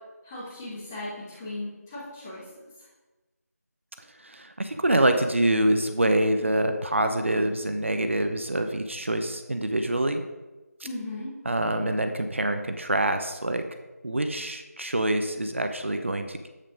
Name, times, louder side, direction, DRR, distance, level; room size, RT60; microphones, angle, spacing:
voice 1, 0.2-2.4 10.8-11.3, left 2 dB, 5° left, -7 dB, 1.2 m, -37 dB
voice 2, 4.2-10.2 11.4-13.6 14.0-16.4, right 1 dB, 45° right, 7 dB, 0.9 m, -25 dB
9.2 x 8.9 x 5.1 m, 1.1 s
figure-of-eight pair, 175°, 9 cm